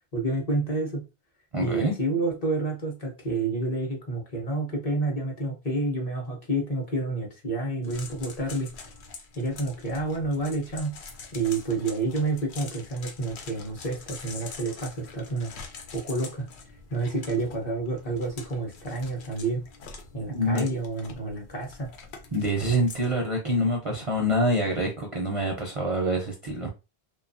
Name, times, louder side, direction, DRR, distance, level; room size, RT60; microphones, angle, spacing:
voice 1, 0.1-1.0 1.6-8.7 9.3-11.0 11.3-15.5 15.9-16.5 16.9-19.6 20.1-21.9, right 2 dB, 40° left, 0.7 m, -29 dB
voice 2, 1.5-1.9 20.3-20.6 22.3-26.7, right 1 dB, 45° right, 0.4 m, -26 dB
sound 1, 7.8-23.1, left 4 dB, 85° left, 0.9 m, -45 dB
2.7 x 2.3 x 2.5 m
omnidirectional pair, 1.1 m